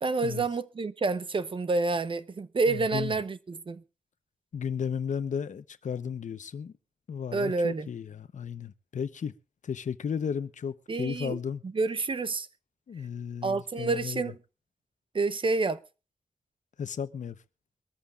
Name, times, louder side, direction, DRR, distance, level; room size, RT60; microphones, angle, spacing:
voice 1, 0.0-3.8 7.3-7.9 10.9-11.4 11.6-12.5 13.4-14.4 15.1-15.8, right 3 dB, 40° right, 0.8 m, -28 dB
voice 2, 2.7-3.1 4.5-6.7 7.1-9.3 9.6-11.6 12.9-14.2 16.8-17.4, left 7 dB, 75° left, 0.9 m, -34 dB
23.0 x 14.0 x 2.5 m
wide cardioid pair, 155°, 13 cm